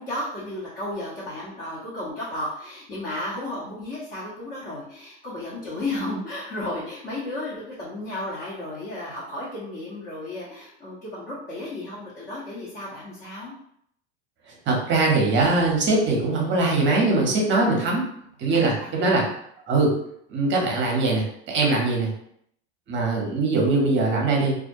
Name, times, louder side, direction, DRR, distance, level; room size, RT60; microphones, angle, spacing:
voice 1, 0.0-13.5 17.3-17.5 18.5-19.0, left 1 dB, 30° left, -8 dB, 0.8 m, -33 dB
voice 2, 14.7-18.0 18.4-19.2 19.7-19.9 20.3-22.1 22.9-24.5, right 3 dB, 35° right, -1 dB, 0.8 m, -21 dB
2.4 x 2.1 x 2.6 m, 0.70 s
supercardioid pair, 110°, 35 cm